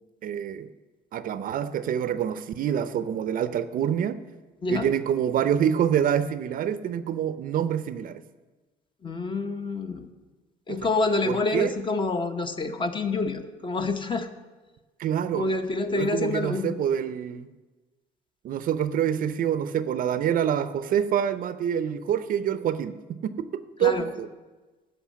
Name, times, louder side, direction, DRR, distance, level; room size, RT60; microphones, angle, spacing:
voice 1, 0.2-0.7 1.1-4.2 4.7-8.2 10.7-10.8 11.2-11.7 15.0-15.5 15.9-17.5 18.4-22.9 23.2-24.3, right 9 dB, 55° right, 13 dB, 0.5 m, -26 dB
voice 2, 9.0-10.1 10.7-14.3 15.3-16.8 23.8-24.1, left 3 dB, 30° left, 7 dB, 0.9 m, -27 dB
11.0 x 5.5 x 7.3 m, 1.2 s
cardioid pair, 110°, 17 cm